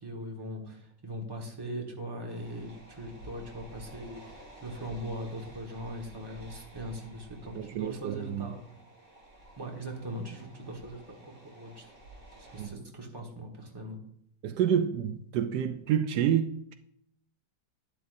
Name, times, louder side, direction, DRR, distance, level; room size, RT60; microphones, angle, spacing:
voice 1, 0.0-8.6 9.6-11.9 12.4-14.0, right 1 dB, 15° right, 1.3 m, -40 dB
sound 1, 2.3-12.7, right 1 dB, 45° right, 2.8 m, -52 dB
voice 2, 7.5-8.5 12.6-12.8 14.4-16.7, right 9 dB, 80° right, 1.2 m, -29 dB
11.5 x 10.0 x 2.6 m
omnidirectional pair, 1.8 m